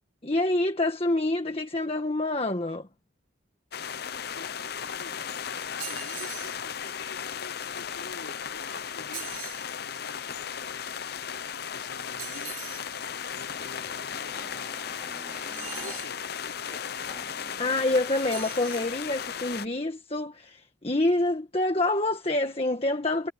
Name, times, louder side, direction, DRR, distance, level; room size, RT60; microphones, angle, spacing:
voice 1, 0.2-2.9 17.6-23.3, left 2 dB, 30° left, 1.6 m, -27 dB
sound 1, 3.7-19.7, left 7 dB, 55° left, 0.7 m, -36 dB
voice 2, 4.3-5.2 5.4-14.9 15.5-16.8, left 3 dB, 80° left, 4.2 m, -48 dB
sound 2, 5.8-6.6 9.1-9.7 12.2-12.9 15.5-16.2 18.2-18.9, right 9 dB, 85° right, 4.3 m, -41 dB
Motorcycle, 13.2-19.7, right 1 dB, 10° right, 4.5 m, -51 dB
head